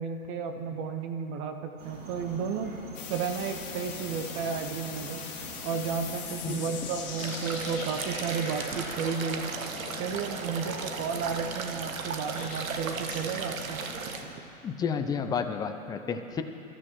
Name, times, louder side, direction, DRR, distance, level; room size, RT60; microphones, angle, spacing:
voice 1, 0.0-2.7 3.1-5.2 5.6-9.5 10.0-13.8, right 6 dB, 30° right, 6 dB, 0.9 m, -33 dB
sound 1, 1.8-14.3, right 2 dB, 50° right, 4.1 m, -44 dB
sound 2, 2.9-11.4 12.3-13.5, left 6 dB, 25° left, 3.1 m, -42 dB
sound 3, 7.2-14.2, right 5 dB, 65° right, 1.5 m, -36 dB
voice 2, 14.6-16.4, left 6 dB, 10° left, 7 dB, 0.5 m, -31 dB
28.0 x 14.0 x 3.1 m, 2.9 s
figure-of-eight pair, 105°, 43 cm